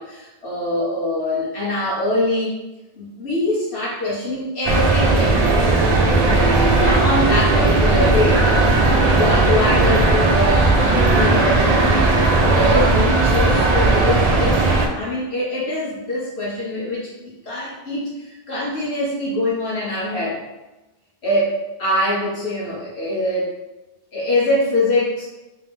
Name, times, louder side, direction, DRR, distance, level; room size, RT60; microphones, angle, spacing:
voice 1, 0.0-2.5 3.0-5.4 6.2-8.4 9.1-14.6 15.0-20.4 21.2-23.5 24.1-25.2, left 1 dB, 80° left, -7 dB, 1.3 m, -23 dB
sound 1, 4.6-14.9, right 2 dB, 50° right, 0.5 m, -16 dB
3.4 x 2.9 x 3.3 m, 1.0 s
omnidirectional pair, 1.1 m